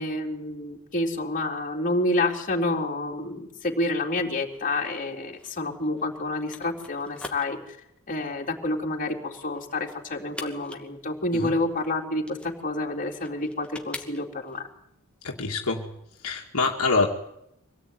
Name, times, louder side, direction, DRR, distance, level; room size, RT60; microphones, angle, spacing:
voice 1, 0.0-7.6 8.1-14.7, left 2 dB, 35° left, 0 dB, 3.8 m, -28 dB
sound 1, 4.4-14.6, left 2 dB, 5° left, 2.4 m, -45 dB
voice 2, 15.2-15.9 16.2-17.1, left 3 dB, 70° left, 0 dB, 2.3 m, -25 dB
25.5 x 18.0 x 9.5 m, 0.80 s
head